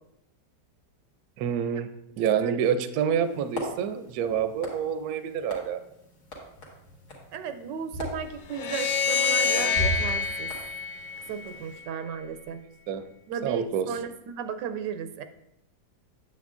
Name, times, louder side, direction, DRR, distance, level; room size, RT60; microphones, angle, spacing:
voice 1, 1.4-1.9 2.2-5.8 12.9-13.0 13.4-13.9, right 8 dB, 70° right, 10 dB, 1.0 m, -27 dB
sound 1, 3.2-11.8, equal, 65° left, 2.1 m, -39 dB
voice 2, 7.3-10.5 11.3-12.6 13.3-15.2, right 7 dB, 90° right, 9 dB, 1.3 m, -35 dB
sound 2, 8.5-11.8, left 5 dB, 80° left, 1.2 m, -27 dB
8.8 x 7.7 x 2.5 m, 0.79 s
omnidirectional pair, 1.9 m